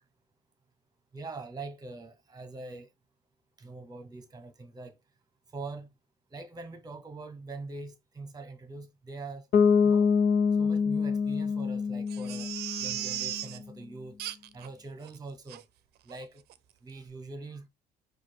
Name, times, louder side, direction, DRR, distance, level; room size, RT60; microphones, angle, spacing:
voice 1, 1.1-2.9 3.6-5.0 5.5-5.9 6.3-9.5 9.8-10.1 10.6-12.5 12.8-14.2 14.5-15.7 16.0-16.4 16.8-17.7, right 3 dB, 20° right, 1.1 m, -43 dB
Bass guitar, 9.5-13.4, left 6 dB, 60° left, 0.9 m, -25 dB
Crying sobbing, 12.1-13.6 14.2-14.7 15.0-15.1 15.5-15.6 16.1-16.2 16.5-16.6, right 12 dB, 70° right, 0.5 m, -36 dB
4.7 x 2.4 x 4.5 m
cardioid pair, 110°, 17 cm